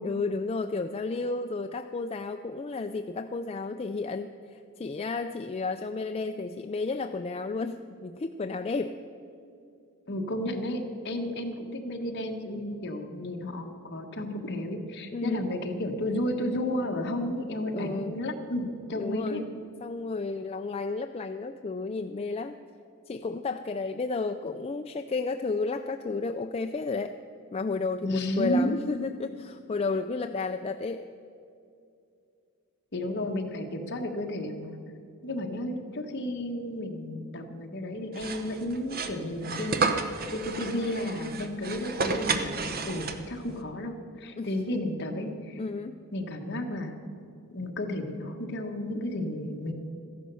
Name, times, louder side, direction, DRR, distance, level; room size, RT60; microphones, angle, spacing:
voice 1, 0.0-9.0 15.1-15.5 17.7-18.3 19.0-19.5 19.8-22.6 23.1-27.2 27.5-31.1 44.4-44.8 45.6-46.0, left 3 dB, 25° left, 7 dB, 0.4 m, -32 dB
voice 2, 10.1-19.4 28.0-28.8 32.9-34.8 35.2-45.6 46.1-46.9 47.5-49.7, left 1 dB, 50° left, 3 dB, 1.4 m, -32 dB
sound 1, 38.1-43.5, right 4 dB, 45° right, 0.9 m, -31 dB
14.0 x 11.0 x 6.9 m, 2.5 s
head